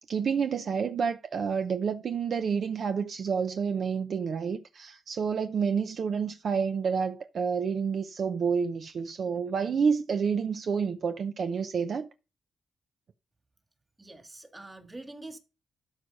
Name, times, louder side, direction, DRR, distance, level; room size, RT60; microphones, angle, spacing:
voice 1, 0.1-12.1, right 6 dB, 55° right, 0.6 m, -29 dB
voice 2, 14.0-15.4, right 2 dB, 15° right, 1.8 m, -45 dB
12.5 x 4.8 x 5.3 m
cardioid pair, 120°, 0 cm